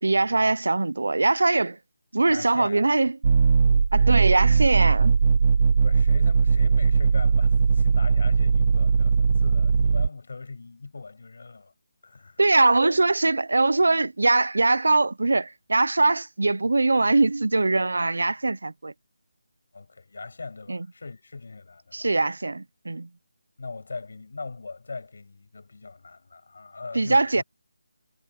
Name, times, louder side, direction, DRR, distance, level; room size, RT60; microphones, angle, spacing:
voice 1, 0.0-1.8 2.1-3.2 3.9-5.1 12.4-18.9 20.7-20.9 21.9-23.1 26.9-27.4, right 3 dB, 85° right, 0.7 m, -22 dB
voice 2, 2.3-2.8 5.8-11.7 12.0-12.4 19.7-22.1 23.6-27.4, left 3 dB, 50° left, 6.6 m, -40 dB
sound 1, 3.2-10.1, right 5 dB, 30° right, 1.0 m, -19 dB
figure-of-eight pair, 180°, 0 cm